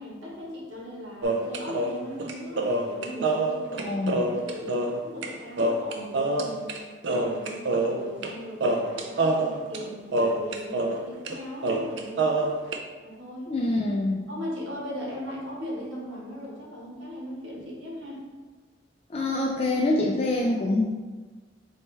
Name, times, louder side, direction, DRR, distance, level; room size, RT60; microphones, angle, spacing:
voice 1, 0.0-4.0 4.3-6.7 7.0-12.5 13.0-13.5 14.3-18.2, equal, 85° right, -4 dB, 1.4 m, -38 dB
sound 1, 1.2-5.3 5.6-6.8 7.0-8.3 8.6-11.0 11.3-11.4 11.6-12.8, right 2 dB, 65° right, 0.4 m, -26 dB
voice 2, 3.9-4.2 13.5-14.2 19.1-20.9, left 2 dB, 30° left, -2 dB, 0.3 m, -25 dB
4.2 x 3.2 x 3.2 m, 1.3 s
head